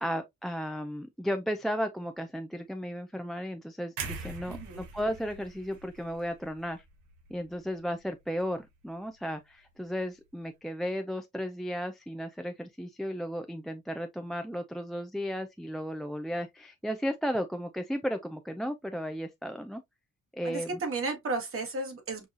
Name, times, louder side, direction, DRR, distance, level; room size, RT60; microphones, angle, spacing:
voice 1, 0.0-6.8 7.3-19.8 20.3-20.8, equal, ahead, 0.3 m, -34 dB
sound 1, 4.0-8.0 8.3-8.6, right 4 dB, 90° right, 1.0 m, -43 dB
voice 2, 4.5-4.8 20.4-22.3, right 3 dB, 45° right, 1.4 m, -33 dB
5.5 x 2.3 x 2.4 m
cardioid pair, 90°, 30 cm